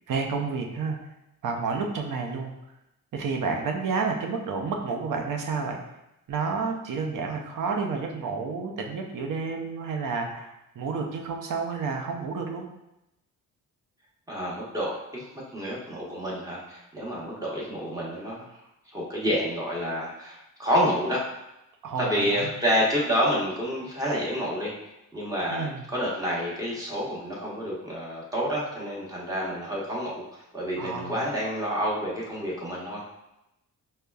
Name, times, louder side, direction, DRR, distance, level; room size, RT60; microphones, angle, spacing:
voice 1, 0.1-1.0 1.4-2.5 3.1-5.8 6.3-12.7 21.8-22.5 25.5-25.9 30.8-31.2, right 4 dB, 65° right, 2 dB, 0.7 m, -30 dB
voice 2, 14.3-15.3 15.5-18.5 18.9-21.2 22.0-24.7 25.1-33.0, equal, 10° right, -6 dB, 1.1 m, -28 dB
5.2 x 2.2 x 2.3 m, 0.89 s
cardioid pair, 95°, 34 cm